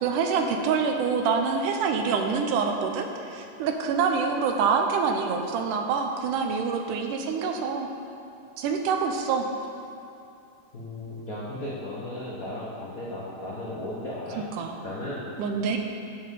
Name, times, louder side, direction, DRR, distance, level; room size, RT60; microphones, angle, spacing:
voice 1, 0.0-7.9 8.6-9.5 14.6-14.8 15.4-15.8, right 5 dB, 85° right, 4 dB, 2.3 m, -26 dB
voice 2, 10.7-14.4 14.8-15.3, left 1 dB, 80° left, -7 dB, 0.7 m, -35 dB
10.0 x 4.3 x 7.2 m, 2.6 s
omnidirectional pair, 3.6 m